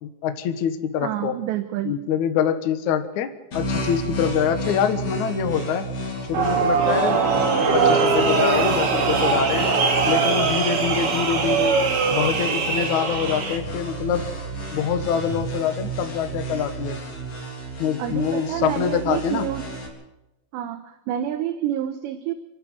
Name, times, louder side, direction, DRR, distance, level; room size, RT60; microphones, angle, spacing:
voice 1, 0.0-1.3 1.8-3.3 3.5-5.8 6.3-7.4 7.7-9.7 10.0-11.8 12.1-14.2 14.7-17.0 17.8-19.4, left 8 dB, 75° left, 7 dB, 1.8 m, -25 dB
voice 2, 1.0-1.9 18.0-19.7 20.5-22.3, right 11 dB, 75° right, 8 dB, 2.9 m, -28 dB
sound 1, 3.5-19.9, right 2 dB, 30° left, 4.3 m, -31 dB
sound 2, 6.3-13.6, right 4 dB, 40° right, 2.1 m, -21 dB
29.0 x 11.5 x 7.9 m, 0.95 s
omnidirectional pair, 5.6 m